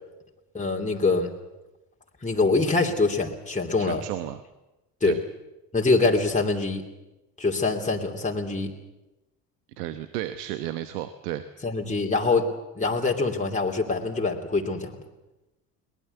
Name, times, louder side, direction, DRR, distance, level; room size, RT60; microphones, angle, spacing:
voice 1, 0.5-1.3 2.2-4.0 5.0-5.2 5.7-6.8 7.4-8.7 11.6-12.5 12.8-14.9, left 3 dB, 15° left, 0 dB, 2.9 m, -24 dB
voice 2, 3.8-4.4 5.0-5.2 9.8-11.4, right 13 dB, 75° right, 11 dB, 1.1 m, -33 dB
22.0 x 19.0 x 8.1 m, 1.0 s
hypercardioid pair, 60°, 47 cm